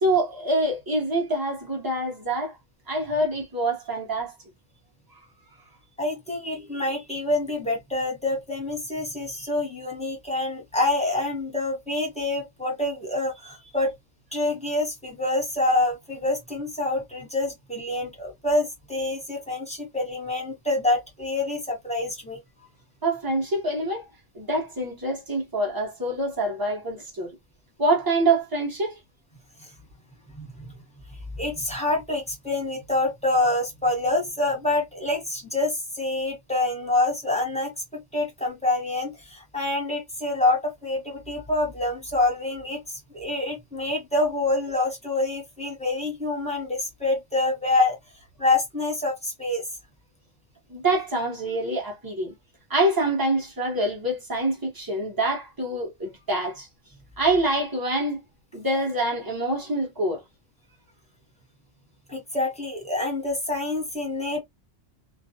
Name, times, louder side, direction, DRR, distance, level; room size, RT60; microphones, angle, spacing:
voice 1, 0.0-2.5 2.9-4.3 23.0-24.0 24.3-27.3 27.8-28.9 50.7-52.3 52.7-56.7 57.2-58.2 58.5-60.2, right 1 dB, 20° right, 0.9 m, -25 dB
voice 2, 6.0-13.9 14.3-22.4 30.4-30.5 31.4-47.9 48.4-49.6 62.1-64.4, left 2 dB, 5° left, 1.0 m, -26 dB
2.5 x 2.2 x 2.6 m
omnidirectional pair, 1.3 m